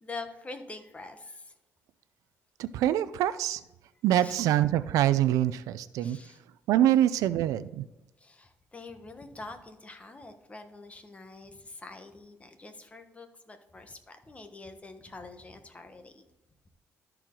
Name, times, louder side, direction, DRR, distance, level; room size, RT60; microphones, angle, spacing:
voice 1, 0.0-1.5 4.2-4.4 6.0-6.4 8.2-16.3, left 3 dB, 25° left, 7 dB, 1.2 m, -45 dB
voice 2, 2.6-3.6 4.0-6.2 6.7-7.9, right 12 dB, 85° right, 15 dB, 0.4 m, -25 dB
12.5 x 4.6 x 3.8 m, 0.96 s
cardioid pair, 90°, 6 cm